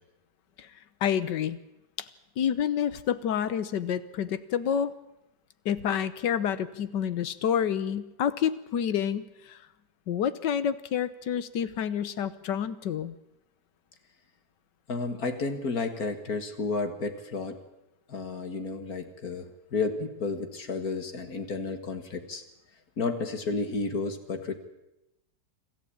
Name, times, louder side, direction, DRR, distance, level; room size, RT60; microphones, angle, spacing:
voice 1, 1.0-1.6 2.0-2.1 2.4-4.9 5.6-9.6 10.1-13.1, left 8 dB, 85° left, 15 dB, 1.6 m, -28 dB
voice 2, 14.9-17.6 18.1-22.4 23.0-24.5, left 4 dB, 60° left, 8 dB, 2.2 m, -32 dB
25.5 x 14.0 x 8.7 m, 0.91 s
omnidirectional pair, 1.9 m